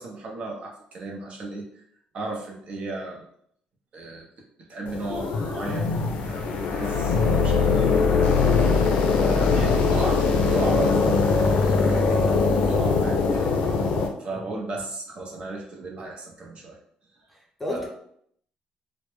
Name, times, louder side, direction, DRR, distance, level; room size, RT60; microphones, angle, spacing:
voice 1, 0.0-1.7 2.1-3.3 3.9-4.3 4.6-8.3 8.6-8.8 9.1-13.5 14.2-16.8 17.7-17.9, right 2 dB, 50° right, -1 dB, 0.6 m, -35 dB
sound 1, 4.9-14.1, left 4 dB, 80° left, 0.4 m, -21 dB
voice 2, 17.3-17.9, left 1 dB, 5° left, -1 dB, 0.5 m, -34 dB
2.1 x 2.0 x 3.0 m, 0.68 s
cardioid pair, 115°, 3 cm